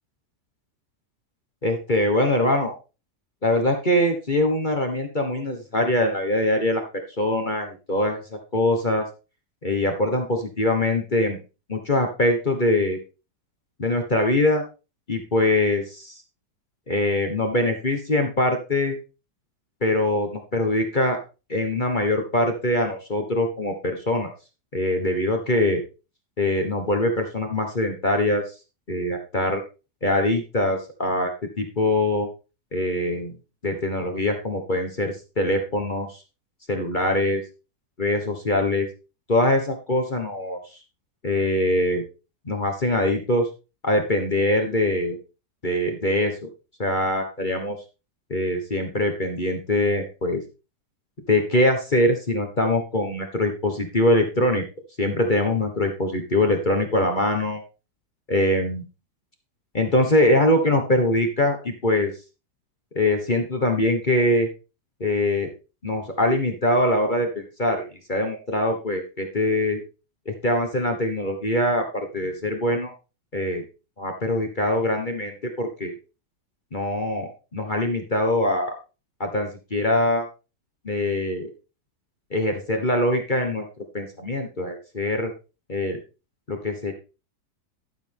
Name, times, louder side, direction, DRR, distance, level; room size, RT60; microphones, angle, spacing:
voice 1, 1.6-2.7 3.4-9.0 9.6-11.4 11.7-13.0 13.8-14.6 15.1-16.2 16.9-19.0 19.8-21.2 21.5-24.3 24.7-25.8 26.4-28.4 28.9-29.6 30.0-31.3 31.6-32.3 32.7-33.4 33.6-36.2 36.7-37.4 38.0-38.9 39.3-40.6 41.2-42.0 42.4-43.5 43.8-45.2 45.6-46.5 46.8-47.8 48.3-50.4 51.3-54.6 55.0-57.6 58.3-58.8 59.7-62.1 62.9-64.5 65.0-65.5 65.8-69.8 70.2-72.9 73.3-73.6 74.0-75.9 76.7-78.7 79.2-80.3 80.8-81.5 82.3-83.6 83.9-85.3 85.7-86.0 86.5-86.9, left 1 dB, 30° left, 4 dB, 1.5 m, -23 dB
12.0 x 7.3 x 3.6 m, 0.31 s
omnidirectional pair, 1.8 m